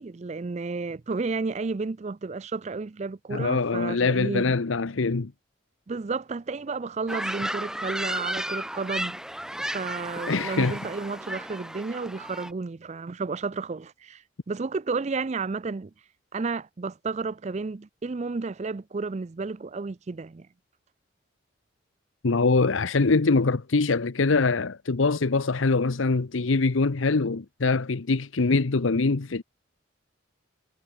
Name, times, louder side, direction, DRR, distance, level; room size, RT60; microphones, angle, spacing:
voice 1, 0.0-4.5 5.9-9.2 9.6-15.9 16.3-20.5, right 4 dB, 35° right, 0.4 m, -32 dB
voice 2, 3.3-5.3 10.3-10.8 22.2-29.4, left 3 dB, 80° left, 0.8 m, -23 dB
sound 1, 7.1-12.5, right 1 dB, 5° right, 1.0 m, -33 dB
head